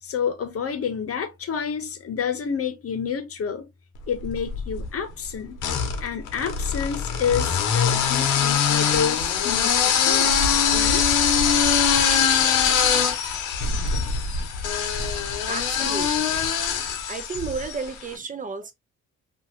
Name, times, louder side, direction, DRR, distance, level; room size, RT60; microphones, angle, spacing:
voice 1, 0.0-3.7 4.1-5.6 6.0-10.3 10.7-11.1, left 7 dB, 50° left, 0.8 m, -29 dB
sound 1, 4.2-4.9 5.6-17.9, left 7 dB, 90° left, 0.7 m, -22 dB
voice 2, 15.5-16.4 17.1-18.7, right 5 dB, 25° right, 0.6 m, -33 dB
2.7 x 2.5 x 3.0 m
cardioid pair, 90°, 30 cm